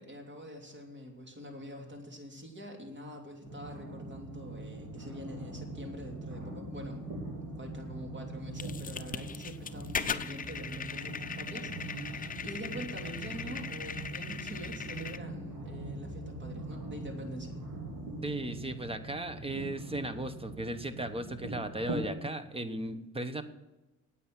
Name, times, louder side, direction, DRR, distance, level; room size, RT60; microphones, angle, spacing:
voice 1, 0.0-7.0 7.6-17.6, equal, 35° right, 2 dB, 3.0 m, -45 dB
sound 1, 3.4-22.1, right 2 dB, 80° right, 3.6 m, -42 dB
sound 2, 8.6-15.2, left 6 dB, 30° left, 0.6 m, -39 dB
voice 2, 18.2-23.4, right 1 dB, 20° right, 11 dB, 1.1 m, -36 dB
9.4 x 8.6 x 7.7 m, 1.0 s
cardioid pair, 90°, 30 cm